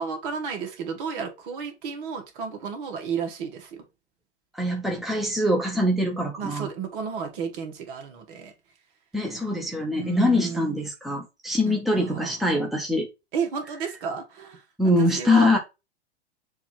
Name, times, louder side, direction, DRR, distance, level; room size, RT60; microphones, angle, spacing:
voice 1, 0.0-3.8 6.4-8.5 9.9-10.8 11.6-12.4 13.3-14.6 15.0-15.5, right 6 dB, 50° right, 2.1 m, -32 dB
voice 2, 4.5-6.7 9.1-13.1 14.8-15.6, left 1 dB, ahead, 1.3 m, -23 dB
7.0 x 3.0 x 4.5 m
hypercardioid pair, 105°, 34 cm